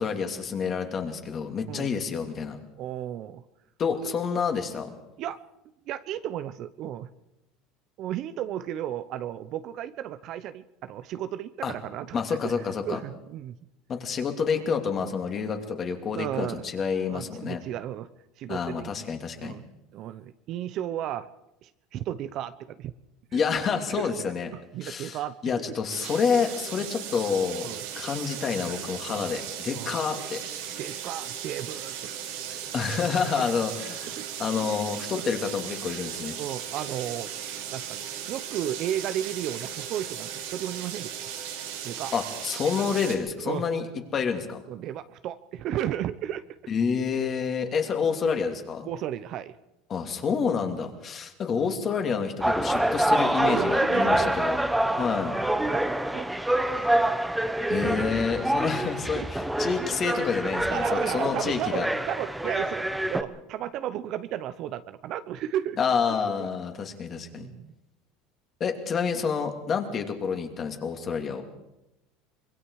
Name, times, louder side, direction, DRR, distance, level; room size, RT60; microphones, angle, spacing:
voice 1, 0.0-2.6 3.8-4.9 11.6-11.7 12.1-13.0 13.9-17.6 18.5-19.6 23.3-24.5 24.8-25.2 25.4-30.4 32.7-34.1 34.4-36.4 42.1-43.8 44.1-44.6 46.7-48.9 49.9-54.6 55.0-55.4 57.7-61.9 65.8-67.5 68.6-71.4, left 6 dB, 35° left, 4 dB, 2.8 m, -28 dB
voice 2, 2.8-3.4 5.2-5.4 5.9-7.1 8.0-13.6 16.2-16.6 17.1-18.1 18.4-18.9 19.4-19.6 19.9-21.3 21.6-22.9 23.3-23.4 23.9-24.1 24.5-25.5 26.8-26.9 27.6-27.8 29.1-29.3 29.7-30.0 30.8-32.1 32.5-32.7 33.4-33.5 34.1-34.3 35.1-35.2 36.4-37.3 37.7-41.3 41.8-42.1 43.4-43.6 44.7-46.4 48.8-49.5 50.8-50.9 53.4-54.5 54.8-55.0 55.7-56.3 56.7-57.2 58.4-58.5 59.1-59.3 60.7-65.8 66.4-66.5 67.1-67.7, right 11 dB, 50° right, 12 dB, 0.9 m, -34 dB
sound 1, 25.9-43.2, right 9 dB, 90° right, 3.7 m, -37 dB
sound 2, 52.4-63.2, right 1 dB, 5° right, 1.2 m, -26 dB
25.0 x 22.0 x 4.9 m, 0.90 s
supercardioid pair, 120°, 0 cm